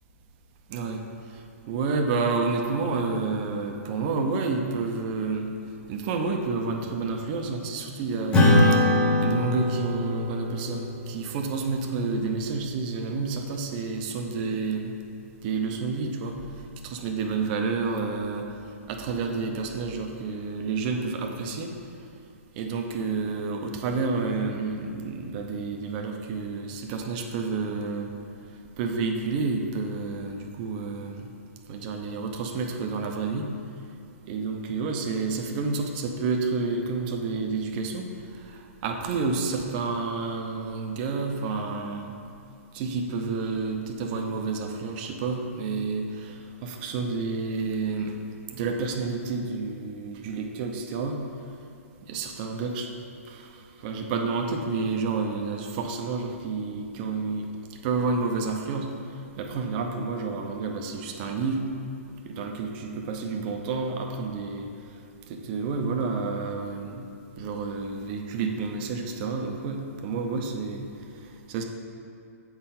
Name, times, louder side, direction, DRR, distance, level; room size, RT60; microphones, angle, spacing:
voice 1, 0.7-1.1 1.7-5.5 5.9-8.5 9.2-14.9 15.4-16.4 16.8-18.5 18.9-21.7 22.6-28.1 28.8-31.3 31.7-33.5 34.3-38.1 38.4-42.1 42.7-48.2 48.5-51.2 52.1-52.9 53.3-53.5 53.8-57.5 57.8-58.9 59.4-61.6 62.2-64.7 65.3-67.1 67.4-70.8 71.5-71.6, right 4 dB, 35° right, 3 dB, 0.6 m, -29 dB
Acoustic guitar / Strum, 8.3-13.1, left 1 dB, 15° left, 0.9 m, -24 dB
7.7 x 4.3 x 3.8 m, 2.5 s
hypercardioid pair, 140°, 8 cm